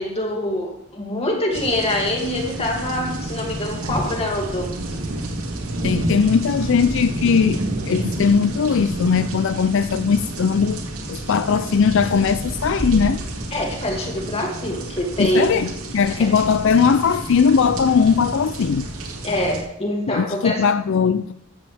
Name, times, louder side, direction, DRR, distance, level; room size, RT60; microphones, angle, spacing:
voice 1, 0.0-4.7 13.5-15.6 16.2-16.3 19.2-20.6, left 1 dB, 30° left, 0 dB, 2.5 m, -24 dB
sound 1, 1.5-19.6, right 1 dB, 85° right, 2.4 m, -29 dB
voice 2, 5.8-10.8 11.1-13.2 15.2-19.1 20.1-21.3, left 6 dB, 60° left, 13 dB, 0.4 m, -19 dB
15.0 x 13.0 x 3.5 m, 0.80 s
head